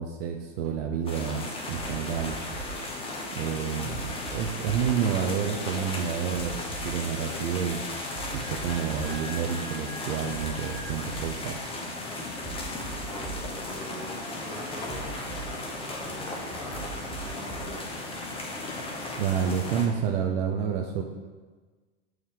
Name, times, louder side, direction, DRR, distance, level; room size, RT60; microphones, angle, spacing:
voice 1, 0.0-2.4 3.3-6.6 6.8-7.8 8.3-11.6 19.2-21.0, right 8 dB, 55° right, 2 dB, 0.6 m, -29 dB
sound 1, 0.6-0.8 1.0-3.3 3.6-7.6 7.9-9.4 9.6-11.9 12.2-16.1 16.5-17.7, right 4 dB, 70° right, 1.9 m, -42 dB
sound 2, 1.1-19.9, left 2 dB, 15° left, 0.8 m, -36 dB
Wind instrument woodwind instrument, 8.4-11.0, left 1 dB, 65° left, 1.3 m, -45 dB
voice 2, 13.0-18.0, equal, 5° right, -6 dB, 1.6 m, -44 dB
6.4 x 4.6 x 3.7 m, 1.4 s
supercardioid pair, 130°, 34 cm